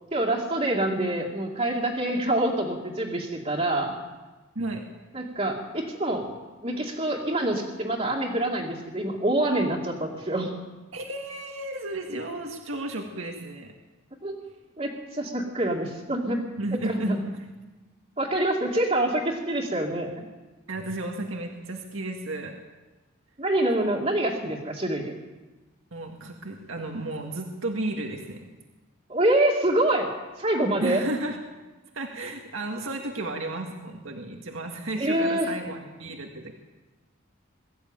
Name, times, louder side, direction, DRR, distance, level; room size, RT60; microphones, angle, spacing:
voice 1, 0.1-4.0 5.1-6.2 6.6-10.5 14.2-14.4 14.8-16.4 16.8-17.2 18.2-20.3 23.4-25.1 29.1-30.1 30.4-31.0 35.0-35.5, right 1 dB, 30° right, -4 dB, 2.3 m, -26 dB
voice 2, 10.9-13.7 16.6-17.2 20.7-22.6 25.9-28.5 30.8-31.4 31.9-36.5, right 2 dB, 75° right, 2 dB, 2.0 m, -33 dB
22.5 x 14.5 x 9.0 m, 1.2 s
head